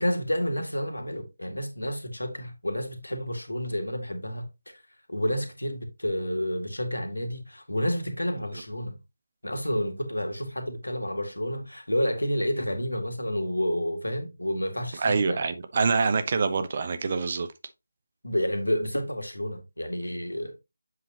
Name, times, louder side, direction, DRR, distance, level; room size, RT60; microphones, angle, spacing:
voice 1, 0.0-4.8 5.1-9.0 9.4-15.4 18.2-20.5, equal, 80° left, 2.0 m, -30 dB
voice 2, 15.0-17.5, right 4 dB, 35° right, 0.8 m, -25 dB
7.7 x 5.5 x 2.9 m
figure-of-eight pair, 160°, 0 cm